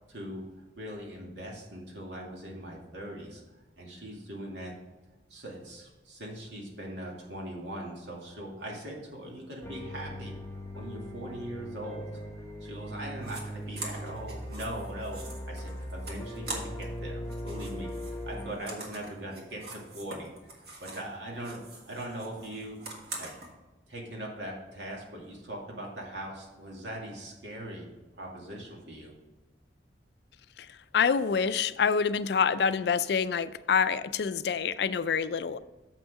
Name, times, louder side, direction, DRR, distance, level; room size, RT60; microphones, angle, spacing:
voice 1, 0.1-0.5 0.8-3.4 3.8-4.7 5.3-10.4 10.7-12.3 12.6-23.3 23.9-27.9 28.2-29.1, right 1 dB, 80° right, -1 dB, 2.2 m, -41 dB
sound 1, 9.6-18.6, equal, 15° left, 0.9 m, -39 dB
sound 2, 13.2-13.4 13.7-17.0 17.2-21.1 21.4-23.5, right 2 dB, 60° right, 1.7 m, -43 dB
voice 2, 30.6-35.6, left 6 dB, 65° left, 14 dB, 0.4 m, -27 dB
7.3 x 6.2 x 4.7 m, 1.1 s
head